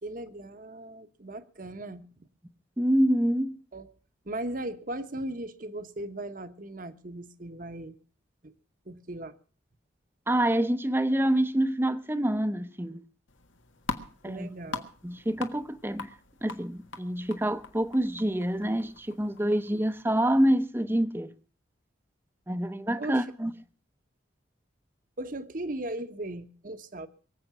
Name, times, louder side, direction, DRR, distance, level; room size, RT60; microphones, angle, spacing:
voice 1, 0.0-2.1 3.7-3.9 4.2-7.9 8.4-8.5 8.9-9.4 14.2-14.9 19.7-19.8 23.0-23.5 25.2-27.1, right 1 dB, 45° right, 1.0 m, -38 dB
voice 2, 2.8-3.6 10.3-13.0 14.2-14.5 15.0-16.1 16.4-21.3 22.5-23.5, right 1 dB, 10° right, 0.7 m, -26 dB
sound 1, 13.3-20.0, left 3 dB, 90° left, 1.6 m, -42 dB
23.5 x 8.0 x 6.0 m
head